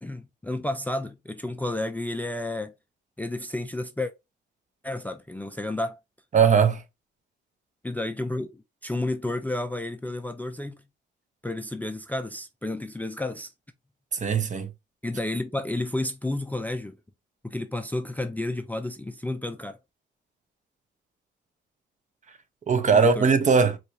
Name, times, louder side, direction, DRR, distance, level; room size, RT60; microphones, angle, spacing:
voice 1, 0.0-2.7 3.2-4.1 4.8-6.0 7.8-10.8 11.4-13.5 15.0-17.0 17.4-19.8 22.8-23.3, left 2 dB, 10° left, 0.4 m, -31 dB
voice 2, 6.3-6.8 14.2-14.7 22.7-23.8, right 6 dB, 40° right, 0.7 m, -20 dB
4.3 x 2.4 x 2.7 m
cardioid pair, 90°, 20 cm